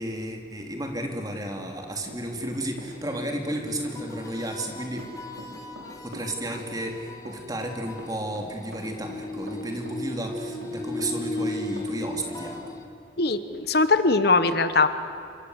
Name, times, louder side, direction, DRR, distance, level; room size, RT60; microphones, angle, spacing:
voice 1, 0.0-5.1 6.0-12.8, right 1 dB, 20° right, 3 dB, 3.0 m, -33 dB
Run, 1.6-3.2 3.5-12.3, right 1 dB, 85° right, 5.1 m, -44 dB
sound 1, 2.8-12.8, left 1 dB, 20° left, 2.0 m, -37 dB
voice 2, 13.2-14.9, left 3 dB, 55° left, 11 dB, 1.1 m, -21 dB
28.0 x 24.5 x 8.1 m, 2.7 s
head